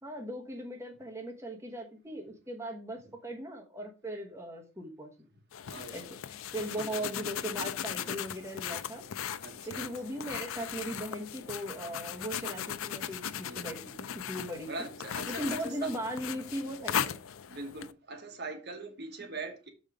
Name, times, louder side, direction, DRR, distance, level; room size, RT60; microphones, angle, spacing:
voice 1, 0.0-5.3 5.9-6.0 6.5-9.0 9.7-13.8 14.3-14.9 15.3-17.1, right 1 dB, 15° right, 1.1 m, -38 dB
sound 1, 5.5-17.9, left 9 dB, 80° left, 0.4 m, -38 dB
voice 2, 5.7-6.1 6.6-7.0 9.4-9.9 13.4-13.9 14.7-15.9 17.5-19.7, right 2 dB, 50° right, 1.1 m, -42 dB
6.5 x 5.3 x 4.8 m
head